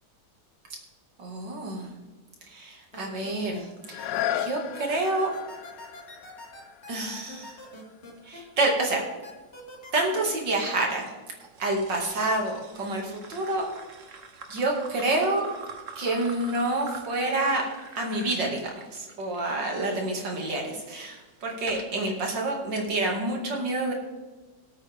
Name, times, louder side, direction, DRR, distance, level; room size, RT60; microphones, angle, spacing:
voice 1, 1.2-1.9 2.5-4.1 4.4-5.3 6.9-7.6 8.3-9.0 9.9-11.1 11.6-13.7 14.5-15.4 16.0-17.6 18.0-18.6 18.9-23.9, right 2 dB, 80° right, 0 dB, 2.9 m, -28 dB
sound 1, 2.9-3.6 4.0-8.4 8.8-10.2, left 1 dB, 35° left, 2.4 m, -44 dB
sound 2, 3.8-9.5 10.1-10.2, left 11 dB, 80° left, 1.3 m, -36 dB
sound 3, 11.4-20.6 21.1-22.1, right 4 dB, 50° right, 1.4 m, -45 dB
18.0 x 8.8 x 3.5 m, 1.2 s
omnidirectional pair, 1.9 m